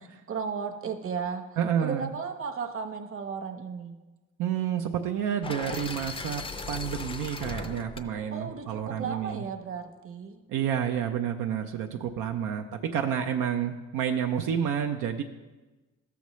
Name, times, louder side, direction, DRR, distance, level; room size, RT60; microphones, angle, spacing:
voice 1, 0.3-4.0 8.3-10.4, right 6 dB, 45° right, 4 dB, 1.0 m, -35 dB
voice 2, 1.6-2.1 4.4-9.4 10.5-15.2, right 8 dB, 85° right, 3 dB, 0.6 m, -29 dB
sound 1, 5.4-9.5, left 3 dB, 20° left, 0.5 m, -39 dB
13.0 x 7.0 x 3.1 m, 1.2 s
cardioid pair, 90°, 30 cm